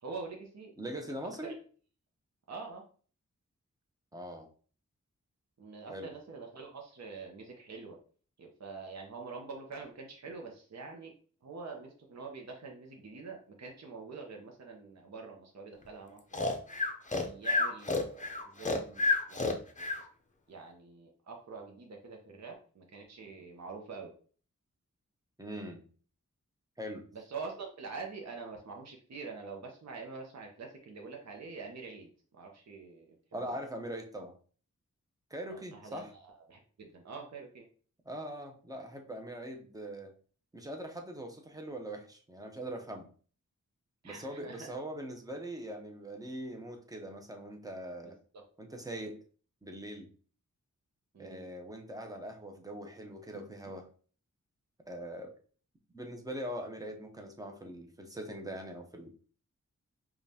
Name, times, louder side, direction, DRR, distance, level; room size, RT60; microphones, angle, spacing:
voice 1, 0.0-0.7 1.0-1.2 1.4-1.5 2.5-2.8 5.6-8.0 8.4-11.1 11.4-16.5 17.2-18.3 18.5-19.0 19.3-19.5 20.5-24.1 27.1-33.1 33.4-33.6 35.5-37.6 44.0-44.7 48.0-48.4 51.1-51.5, right 4 dB, 60° right, 1 dB, 0.7 m, -45 dB
voice 2, 0.8-1.6 4.1-4.5 5.9-6.1 25.4-25.8 26.8-27.0 33.3-34.3 35.3-36.1 38.0-40.1 40.5-43.1 44.0-48.2 48.6-49.2 49.6-50.1 51.2-53.9 54.9-55.3 55.9-59.1, right 1 dB, 10° right, 3 dB, 0.7 m, -42 dB
Breathing, 16.3-20.0, left 3 dB, 25° left, 0.6 m, -30 dB
5.0 x 2.4 x 2.7 m, 0.42 s
wide cardioid pair, 70°, 30 cm